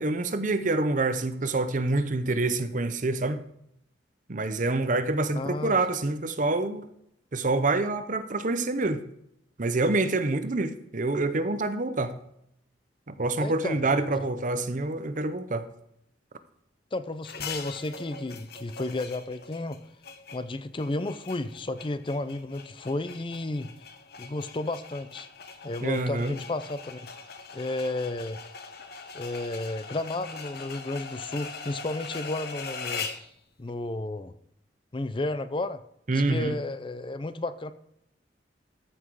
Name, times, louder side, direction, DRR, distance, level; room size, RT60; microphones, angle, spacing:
voice 1, 0.0-3.4 4.3-6.8 7.3-9.0 9.6-12.1 13.1-15.7 25.8-26.3 36.1-36.6, right 2 dB, 45° right, 0.7 m, -26 dB
voice 2, 5.3-5.8 13.4-13.8 16.9-19.8 20.3-23.7 24.2-25.3 25.6-27.1 27.5-28.4 29.1-33.1 33.6-34.3 34.9-35.8 36.1-37.7, left 2 dB, 30° left, 0.5 m, -32 dB
sound 1, 17.2-33.3, left 5 dB, 55° left, 1.1 m, -41 dB
13.5 x 6.0 x 4.7 m
head